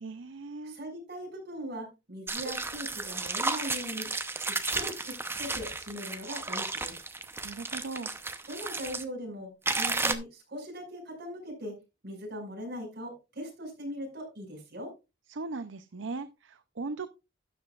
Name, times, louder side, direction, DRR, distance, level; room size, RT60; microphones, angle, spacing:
voice 1, 0.0-0.8 7.4-8.1 15.3-17.1, right 3 dB, 70° right, 11 dB, 0.6 m, -38 dB
voice 2, 0.6-4.1 4.4-7.0 8.5-11.7 12.0-14.9, equal, 55° right, 1 dB, 5.7 m, -40 dB
sound 1, 2.3-9.0 9.7-10.1, right 3 dB, 10° right, 0.8 m, -33 dB
12.5 x 9.7 x 2.4 m, 0.26 s
head